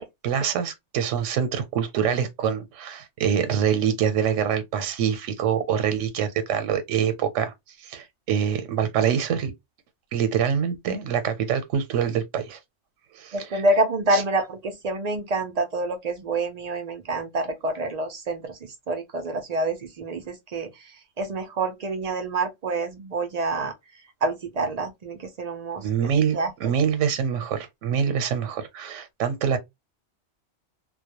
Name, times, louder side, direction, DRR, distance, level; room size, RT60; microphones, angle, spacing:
voice 1, 0.0-7.5 7.8-9.5 10.1-12.6 13.1-13.6 14.1-14.2 25.8-29.6, right 8 dB, 85° right, 1.0 m, -25 dB
voice 2, 13.3-23.7 24.2-26.7, right 2 dB, 65° right, 0.4 m, -27 dB
2.2 x 2.1 x 2.8 m
omnidirectional pair, 1.2 m